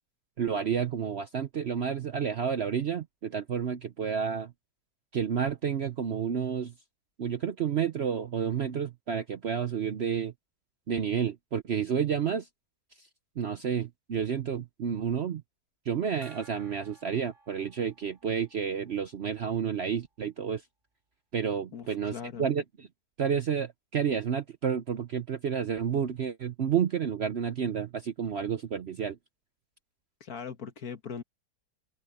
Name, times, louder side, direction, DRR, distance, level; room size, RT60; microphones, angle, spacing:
voice 1, 0.4-4.5 5.1-6.7 7.2-10.3 10.9-12.5 13.4-15.4 15.9-20.6 21.3-22.6 23.2-29.2, right 7 dB, 55° right, 0.8 m, -30 dB
Gong, 16.2-19.5, right 4 dB, 30° right, 4.6 m, -57 dB
voice 2, 21.7-22.5 30.2-31.2, left 7 dB, 65° left, 1.9 m, -40 dB
open air
omnidirectional pair, 1.8 m